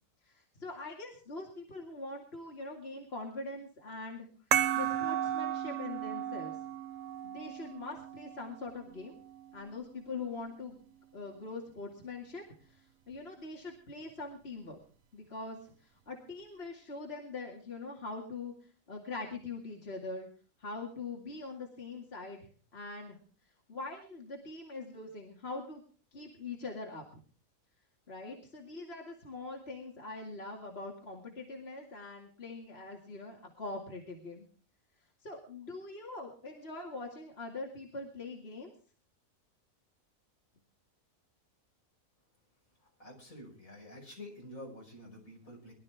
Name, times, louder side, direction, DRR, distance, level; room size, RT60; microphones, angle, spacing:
voice 1, 0.2-4.3 4.7-6.6 7.2-9.2 9.5-10.8 11.1-14.8 15.1-18.5 18.9-20.3 20.6-23.2 23.7-25.8 26.1-27.2 28.1-34.5 35.2-38.7, left 3 dB, 45° left, 0 dB, 2.5 m, -43 dB
sound 1, 4.5-9.6, right 10 dB, 70° right, 1.2 m, -34 dB
voice 2, 43.0-45.7, left 1 dB, 75° left, 0 dB, 6.0 m, -48 dB
22.5 x 12.0 x 3.5 m, 0.40 s
omnidirectional pair, 1.4 m